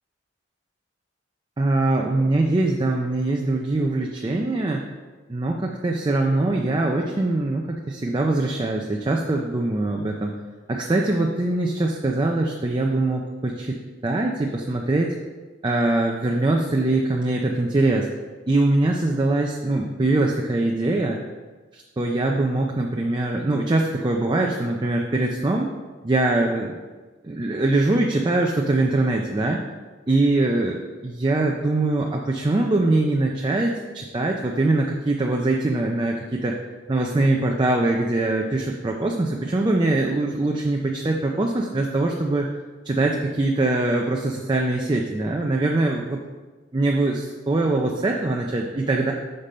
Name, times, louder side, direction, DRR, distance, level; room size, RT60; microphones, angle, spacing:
voice 1, 1.6-4.8 5.3-10.4 10.7-15.1 15.6-18.1 18.5-21.2 21.7-25.7 26.0-26.8 27.2-29.6 30.1-36.6 36.9-42.5 42.8-46.2 46.7-49.1, right 2 dB, 25° right, 0 dB, 0.4 m, -22 dB
6.6 x 4.3 x 5.2 m, 1.3 s
head